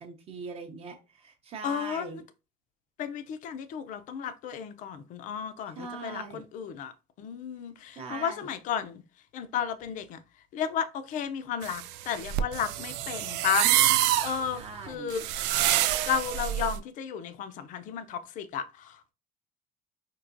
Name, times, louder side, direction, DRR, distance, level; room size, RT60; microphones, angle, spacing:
voice 1, 0.0-2.2 5.7-6.4 8.0-8.5 14.5-15.1, right 3 dB, 35° right, 0.6 m, -41 dB
voice 2, 1.6-2.2 3.0-6.9 7.2-9.0 9.3-10.2 10.5-13.7 14.2-15.2 16.0-19.1, left 8 dB, 50° left, 0.5 m, -33 dB
sound 1, 11.6-16.8, right 13 dB, 85° right, 0.4 m, -27 dB
4.6 x 2.8 x 2.5 m
cardioid pair, 180°, 18 cm